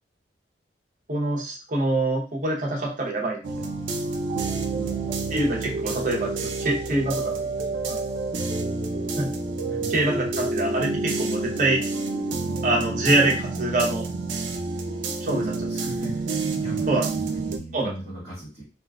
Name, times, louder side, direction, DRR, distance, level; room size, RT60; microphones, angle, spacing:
voice 1, 1.1-3.4 5.3-7.2 7.9-8.0 9.2-9.3 9.9-11.8 12.6-14.1 15.3-15.5 16.9-17.0 17.7-17.9, right 2 dB, 45° right, -1 dB, 0.8 m, -24 dB
sound 1, 3.4-17.6, right 3 dB, 85° right, 0.5 m, -28 dB
voice 2, 4.7-5.2 9.6-10.1 15.2-18.6, right 1 dB, 25° left, -12 dB, 1.2 m, -38 dB
3.8 x 2.4 x 2.3 m, 0.35 s
head